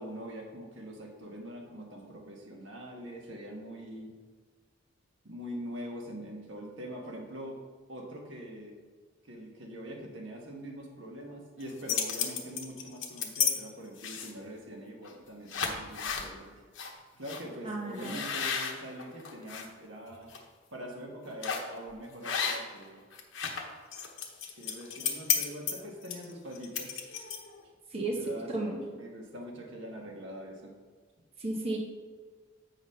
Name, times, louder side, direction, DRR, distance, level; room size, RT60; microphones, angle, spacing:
voice 1, 0.0-4.1 5.2-7.6 7.9-8.7 9.2-16.5 17.2-20.3 20.7-23.0 24.6-26.9 28.2-30.7, equal, 75° right, 0 dB, 1.4 m, -43 dB
sound 1, 11.6-13.5 14.0-14.5 15.0-15.2 15.5-16.3 16.8-16.9 17.3-17.4 18.0-19.7 20.1-20.4 21.4-21.7 22.2-22.8 23.1-27.6, left 7 dB, 85° left, 1.0 m, -33 dB
voice 2, 17.6-18.2 27.9-28.2 28.5-28.8 31.4-31.8, right 2 dB, 30° right, -2 dB, 1.1 m, -33 dB
8.2 x 4.0 x 5.6 m, 1.5 s
head